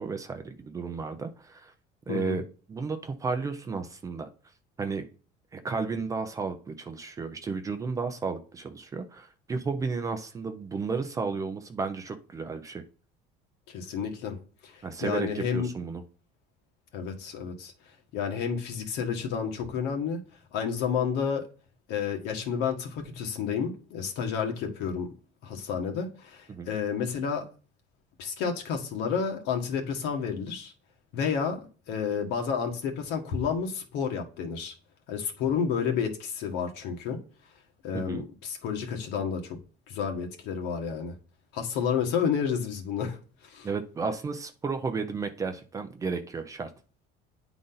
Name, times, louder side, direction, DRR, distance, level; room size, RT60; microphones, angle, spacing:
voice 1, 0.0-1.7 2.1-2.4 2.7-4.3 4.8-5.0 5.5-12.8 14.8-16.0 26.5-26.7 37.9-38.2 43.6-46.7, right 4 dB, 15° right, 0.6 m, -33 dB
voice 2, 13.7-14.4 14.6-15.7 16.9-17.7 18.1-20.2 20.5-21.4 21.9-25.1 25.4-27.5 28.2-30.7 31.1-34.7 35.1-37.2 37.8-39.6 39.9-41.1 41.5-43.7, left 6 dB, 65° left, 1.6 m, -30 dB
10.0 x 3.9 x 3.9 m
cardioid pair, 170°, 18 cm